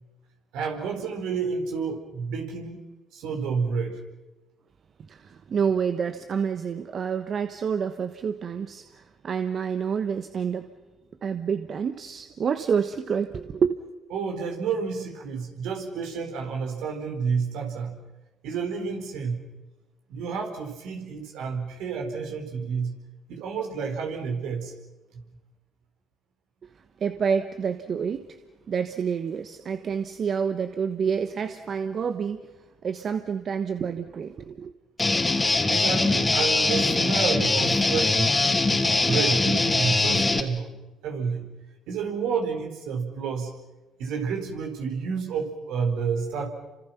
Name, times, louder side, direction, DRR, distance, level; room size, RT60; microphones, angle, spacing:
voice 1, 0.5-2.8 3.1-4.0 14.1-18.0 18.4-19.4 20.1-23.0 23.3-24.7 25.1-25.2 35.7-38.4 39.0-41.5 41.9-43.5 44.0-46.5, right 5 dB, 75° right, 3 dB, 4.4 m, -30 dB
voice 2, 5.1-10.7 11.2-13.8 27.0-28.4 28.7-32.5 32.8-34.7, right 6 dB, 50° right, 9 dB, 1.2 m, -28 dB
Guitar, 35.0-40.4, left 2 dB, 25° left, 3.0 m, -22 dB
29.5 x 26.0 x 5.9 m, 1.1 s
hypercardioid pair, 60°, 0 cm